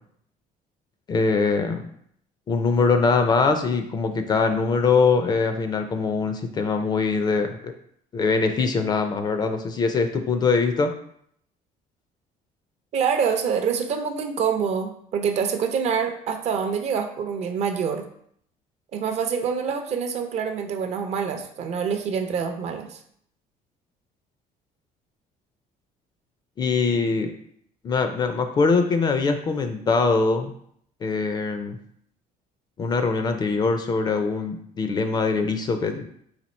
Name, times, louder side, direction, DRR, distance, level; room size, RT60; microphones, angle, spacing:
voice 1, 1.1-1.8 2.5-7.7 8.1-10.9 26.6-27.3 27.8-30.5 31.0-31.8 32.8-36.1, left 4 dB, 30° left, 7 dB, 0.4 m, -22 dB
voice 2, 12.9-18.0 18.9-23.0, right 6 dB, 45° right, 6 dB, 0.5 m, -26 dB
4.2 x 2.4 x 4.2 m, 0.66 s
cardioid pair, 155°, 15 cm